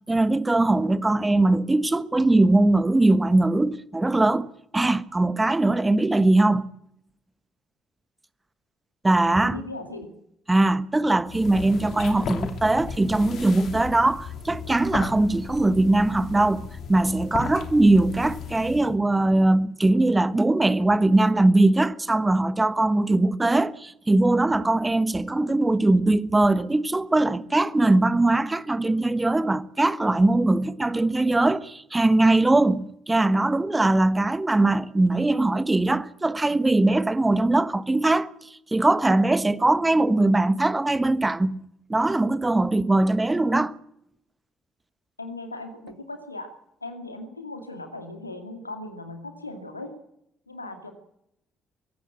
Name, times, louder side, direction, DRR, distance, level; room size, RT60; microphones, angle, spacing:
voice 1, 0.1-6.7 9.0-9.6 10.5-38.3 38.7-41.6 41.9-43.7, right 2 dB, 15° right, 1.3 m, -21 dB
voice 2, 9.3-10.1 45.2-46.5 46.8-49.9 50.5-50.9, left 2 dB, 90° left, 2.4 m, -38 dB
sound 1, 11.3-19.0, left 6 dB, 55° left, 2.9 m, -35 dB
23.5 x 16.5 x 8.8 m
figure-of-eight pair, 45°, 0 cm